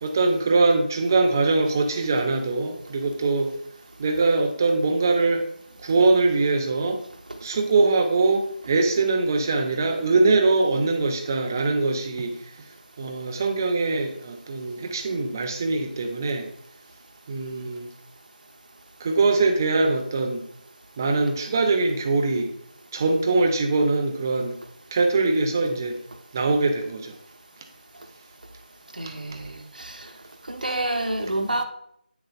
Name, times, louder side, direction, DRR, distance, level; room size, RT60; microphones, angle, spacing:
voice 1, 0.0-3.5 4.0-5.5 5.8-7.0 7.4-12.4 13.0-16.5 17.3-17.9 19.0-20.4 21.0-22.5 22.9-24.6 24.9-26.0 26.3-27.2 29.0-29.1, right 3 dB, 20° right, 0.6 m, -22 dB
voice 2, 28.9-30.1 30.5-31.6, right 1 dB, 60° right, 1.0 m, -28 dB
9.2 x 6.3 x 2.4 m
figure-of-eight pair, 160°, 5 cm